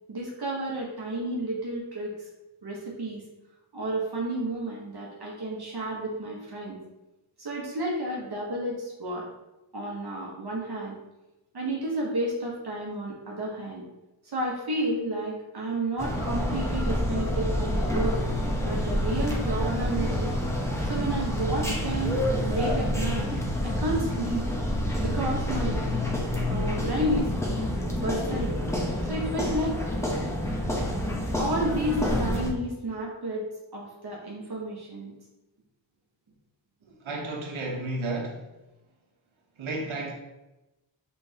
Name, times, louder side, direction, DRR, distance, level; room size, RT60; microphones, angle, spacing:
voice 1, 0.1-2.1 2.6-3.2 3.7-6.8 7.4-9.3 9.7-11.0 11.5-13.8 14.2-18.2 18.6-20.3 20.8-22.2 22.5-23.4 23.6-24.4 25.0-25.9 26.5-27.6 28.0-28.6 29.1-29.7 31.4-33.4 33.7-35.1, right 1 dB, 50° right, -3 dB, 1.1 m, -31 dB
sound 1, 16.0-32.5, left 1 dB, 5° left, 0.8 m, -28 dB
voice 2, 36.8-38.5 39.6-40.1, right 2 dB, 70° right, 0 dB, 1.1 m, -32 dB
5.2 x 3.3 x 2.8 m, 0.99 s
wide cardioid pair, 85°, 50 cm